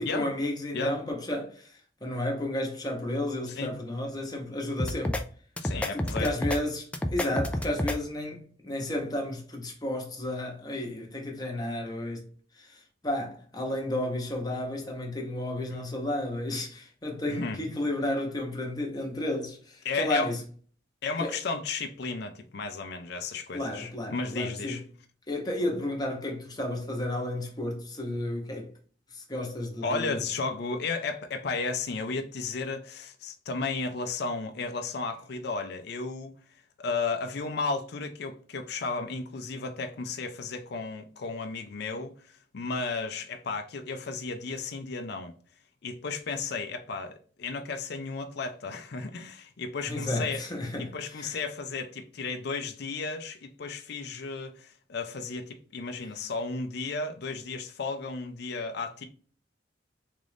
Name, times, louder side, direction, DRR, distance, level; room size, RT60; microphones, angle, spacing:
voice 1, 0.0-5.2 5.9-6.9 7.1-12.3 12.6-20.4 21.2-21.3 23.5-24.8 25.3-28.7 29.1-30.2 49.9-51.4, left 1 dB, 20° left, 1.0 m, -32 dB
sound 1, 4.8-5.2 5.6-6.6 6.9-8.0, left 1 dB, 5° left, 0.3 m, -29 dB
voice 2, 5.6-6.3 17.3-17.6 19.8-20.3 21.0-24.8 29.8-36.3 36.8-42.1 42.5-45.3 45.8-50.4 50.8-59.0, left 4 dB, 65° left, 0.5 m, -33 dB
3.7 x 2.5 x 3.3 m
head